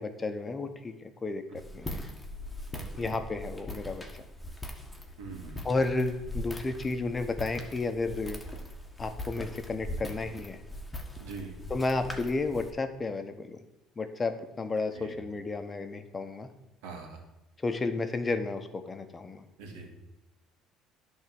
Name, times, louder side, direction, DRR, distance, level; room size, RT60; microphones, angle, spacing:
voice 1, 0.0-2.0 3.0-4.0 5.6-8.4 9.0-10.6 11.7-13.6 14.0-16.5 17.6-19.4, left 3 dB, 25° left, 8 dB, 1.0 m, -32 dB
Walk footsteps, 1.5-12.7, left 1 dB, 10° left, 1.5 m, -41 dB
voice 2, 2.7-3.1 5.2-5.7 9.3-9.4 11.2-11.5 14.9-15.1 16.8-17.2 19.6-19.9, right 4 dB, 85° right, 3 dB, 1.8 m, -43 dB
10.5 x 3.7 x 6.9 m, 0.94 s
supercardioid pair, 80°, 0 cm